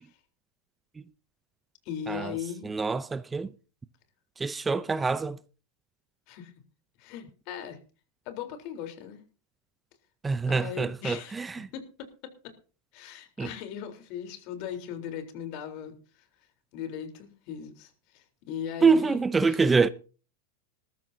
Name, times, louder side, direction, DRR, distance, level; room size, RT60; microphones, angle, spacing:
voice 1, 1.9-2.7 6.3-6.5 7.0-7.8 8.3-9.2 10.5-11.3 11.7-12.3 12.9-16.2 16.7-19.7, left 9 dB, 55° left, 3.8 m, -38 dB
voice 2, 2.6-3.5 4.4-5.4 10.2-11.7 13.4-13.5 18.8-19.9, right 4 dB, 15° right, 0.6 m, -25 dB
20.0 x 13.5 x 2.8 m
hypercardioid pair, 110°, 0 cm